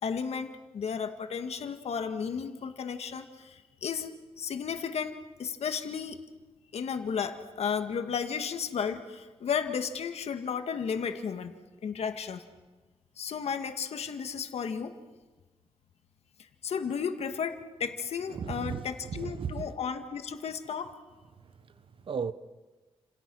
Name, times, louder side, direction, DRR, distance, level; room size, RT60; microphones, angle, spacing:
voice 1, 0.0-4.1 4.4-6.2 6.7-11.5 11.8-12.4 13.2-14.9 16.6-20.9, left 6 dB, 75° left, 1.9 m, -33 dB
voice 2, 18.3-19.7 21.3-22.3, right 6 dB, 55° right, 1.0 m, -36 dB
29.5 x 27.5 x 6.3 m
wide cardioid pair, 155°, 11 cm